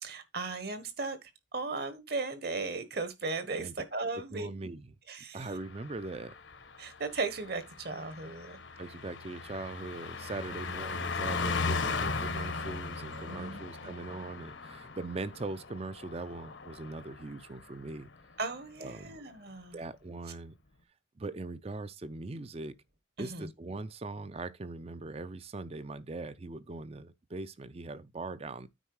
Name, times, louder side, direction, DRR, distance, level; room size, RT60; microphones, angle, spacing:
voice 1, 0.0-4.5 5.1-5.5 6.8-8.6 10.5-10.6 13.1-13.9 18.4-19.8 23.2-23.5, right 3 dB, 55° right, 1.3 m, -37 dB
voice 2, 4.1-4.9 5.3-6.3 8.8-18.1 18.8-19.2 19.7-20.5 21.2-22.8 23.2-28.7, right 3 dB, 30° right, 0.5 m, -41 dB
Car passing by, 5.5-17.4 17.7-18.0, left 4 dB, 75° left, 1.2 m, -38 dB
9.2 x 4.3 x 4.7 m
head